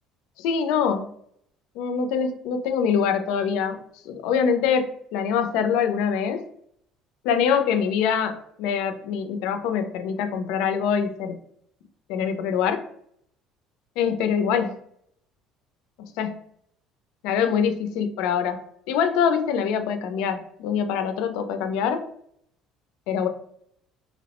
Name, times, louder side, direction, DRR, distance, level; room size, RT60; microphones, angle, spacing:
voice 1, 0.4-1.1 1.8-3.8 4.1-6.4 7.2-11.4 12.1-12.8 14.0-14.7 16.0-16.4 17.2-18.6 18.9-22.0 23.1-23.3, left 7 dB, 80° left, 7 dB, 0.4 m, -24 dB
2.8 x 2.0 x 2.9 m, 0.68 s
cardioid pair, 165°, 0 cm